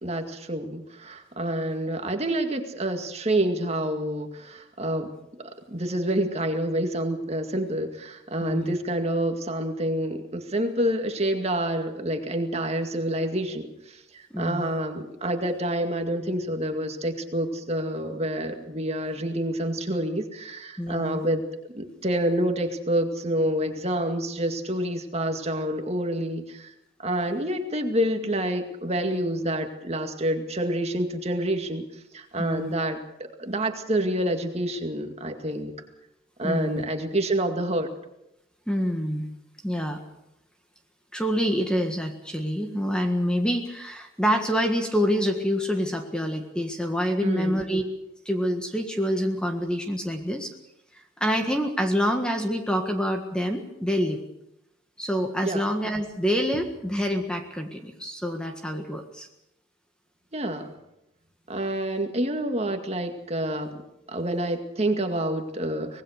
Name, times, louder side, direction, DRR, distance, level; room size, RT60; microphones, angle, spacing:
voice 1, 0.0-5.1 5.4-21.4 21.7-26.7 27.0-31.8 32.1-35.7 36.4-37.9 47.2-47.6 55.4-55.6 60.3-60.7 61.5-63.8 64.1-66.0, right 1 dB, 30° right, 5 dB, 2.1 m, -28 dB
voice 2, 8.4-8.7 14.3-14.7 20.8-21.2 32.4-32.7 36.4-36.8 38.7-39.3 39.6-40.0 41.1-47.8 48.3-50.5 50.9-54.2 55.0-59.3, equal, 5° left, 4 dB, 1.6 m, -27 dB
24.5 x 19.5 x 6.6 m, 0.84 s
head